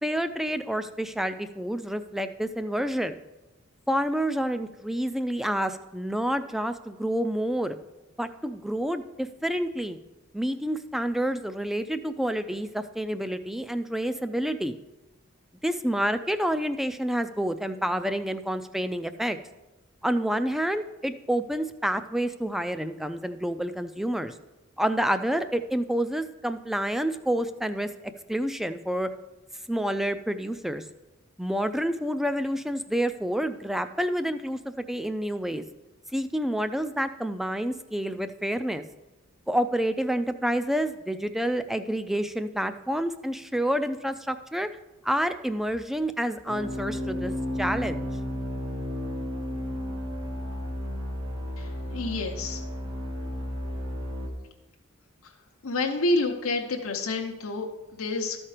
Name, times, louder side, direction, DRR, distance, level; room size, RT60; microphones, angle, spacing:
voice 1, 0.0-3.2 3.9-7.8 8.2-10.0 10.3-14.8 15.6-19.4 20.0-24.3 24.8-29.1 29.7-30.8 31.4-35.6 36.1-38.8 39.5-44.7 45.0-47.3 47.6-48.1, equal, ahead, 10 dB, 0.3 m, -28 dB
sound 1, 46.5-54.3, left 1 dB, 80° right, 1.6 m, -33 dB
voice 2, 51.6-52.6 55.2-55.3 55.6-58.4, left 2 dB, 85° left, 2 dB, 0.8 m, -29 dB
13.0 x 4.4 x 4.9 m, 1.0 s
head